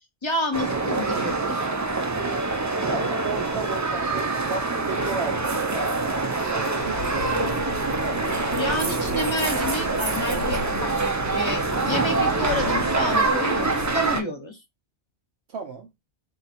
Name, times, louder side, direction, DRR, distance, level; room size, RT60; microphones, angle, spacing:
voice 1, 0.2-1.7 8.6-14.6, left 1 dB, 30° left, 0.9 m, -29 dB
sound 1, 0.5-14.2, right 3 dB, 25° right, 0.4 m, -25 dB
voice 2, 2.9-5.9 6.5-7.7 8.0-8.3 15.5-15.9, right 4 dB, 80° right, 1.0 m, -34 dB
sound 2, 6.8-14.2, left 4 dB, 70° left, 0.9 m, -38 dB
3.5 x 2.8 x 4.2 m
omnidirectional pair, 1.1 m